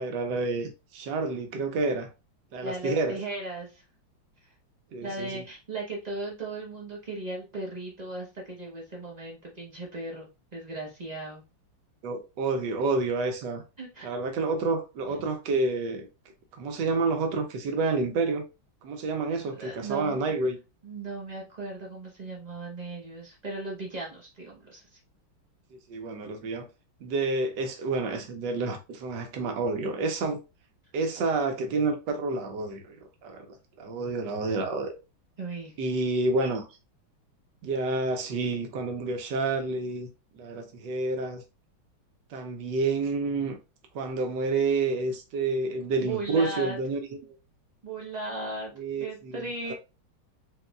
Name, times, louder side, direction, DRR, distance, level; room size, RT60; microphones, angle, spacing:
voice 1, 0.0-2.1 2.5-3.2 4.9-5.4 12.0-13.6 14.0-16.1 16.6-18.4 18.8-20.6 25.9-26.7 27.0-30.4 30.9-33.0 33.2-34.9 35.8-36.7 37.6-40.1 40.3-41.4 42.3-43.6 43.9-47.3 48.8-49.7, right 3 dB, 65° right, 1.3 m, -29 dB
voice 2, 2.6-3.8 4.4-4.5 5.0-11.4 13.8-14.1 19.5-20.2 20.8-25.0 35.4-35.9 46.0-46.8 47.8-48.7 49.0-49.7, right 2 dB, 40° right, 0.6 m, -37 dB
4.5 x 3.1 x 2.3 m
omnidirectional pair, 2.3 m